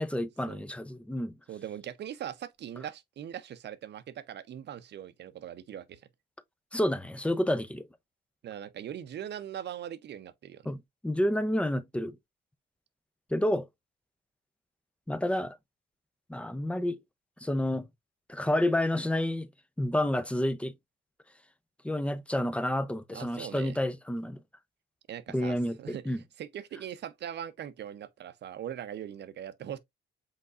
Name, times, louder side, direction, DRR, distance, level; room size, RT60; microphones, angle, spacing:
voice 1, 0.0-1.3 6.7-7.8 10.7-12.2 13.3-13.7 15.1-15.6 16.3-17.0 17.4-17.9 18.3-19.5 19.8-20.7 21.8-24.4 25.3-26.2, left 1 dB, 5° left, 0.6 m, -29 dB
voice 2, 1.5-6.0 8.4-10.6 23.1-23.8 25.1-29.8, right 10 dB, 60° right, 0.7 m, -41 dB
5.4 x 3.8 x 2.4 m
cardioid pair, 90°, 20 cm